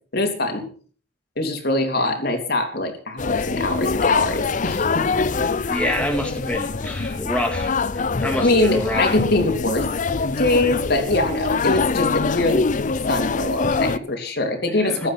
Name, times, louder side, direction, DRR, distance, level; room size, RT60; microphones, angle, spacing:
voice 1, 0.1-0.7 1.4-5.1 8.4-9.9 10.3-12.7 13.0-15.1, left 2 dB, 60° left, 3 dB, 3.4 m, -23 dB
sound 1, 3.2-14.0, left 4 dB, 45° left, 0.6 m, -24 dB
voice 2, 5.7-7.7 8.2-9.2 14.7-15.0, equal, 5° left, 2 dB, 2.1 m, -26 dB
15.5 x 12.5 x 5.9 m, 0.44 s
head